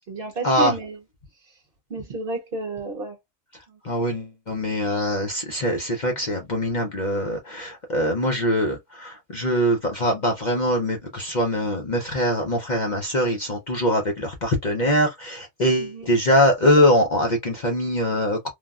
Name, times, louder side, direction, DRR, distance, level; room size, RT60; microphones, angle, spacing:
voice 1, 0.1-1.0 1.9-3.2 15.8-16.1, right 2 dB, 50° right, 0.8 m, -31 dB
voice 2, 3.8-18.5, equal, 45° left, 0.6 m, -23 dB
3.3 x 2.2 x 2.3 m
omnidirectional pair, 1.4 m